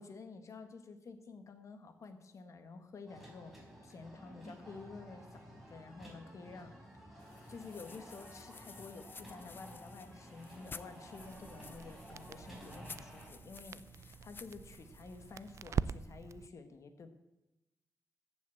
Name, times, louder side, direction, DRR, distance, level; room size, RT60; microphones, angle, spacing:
voice 1, 0.0-3.5 3.8-6.7 7.5-17.1, left 4 dB, 55° left, 8 dB, 1.5 m, -51 dB
sound 1, 3.1-13.3, equal, 5° right, 4.3 m, -53 dB
sound 2, 7.2-15.8, left 4 dB, 35° left, 0.5 m, -54 dB
Crackle, 11.2-16.5, right 7 dB, 50° right, 0.4 m, -43 dB
14.5 x 6.3 x 8.3 m, 0.95 s
wide cardioid pair, 135°, 6 cm